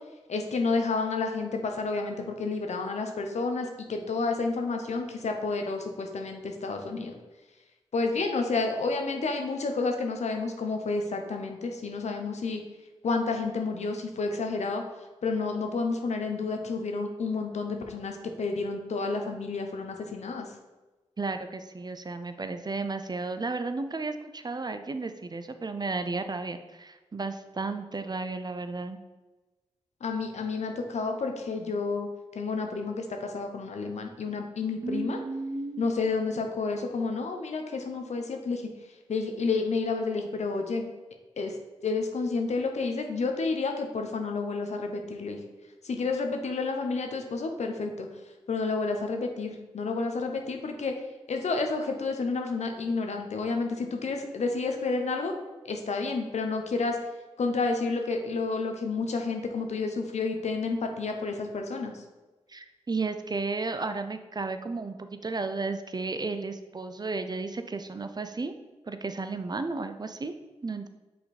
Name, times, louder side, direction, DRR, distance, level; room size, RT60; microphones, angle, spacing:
voice 1, 0.3-7.1 7.9-12.6 13.0-14.8 15.2-20.5 30.0-32.1 32.3-35.2 35.8-38.6 39.1-40.9 41.4-41.5 41.8-45.4 45.8-48.1 48.5-50.9 51.3-55.3 55.7-57.0 57.4-62.0, left 4 dB, 70° left, 4 dB, 0.8 m, -30 dB
voice 2, 21.2-29.0 34.8-35.9 62.5-68.5 68.9-70.3 70.6-70.9, right 3 dB, 35° right, 9 dB, 0.5 m, -33 dB
5.5 x 4.2 x 4.1 m, 1.2 s
cardioid pair, 45°, 12 cm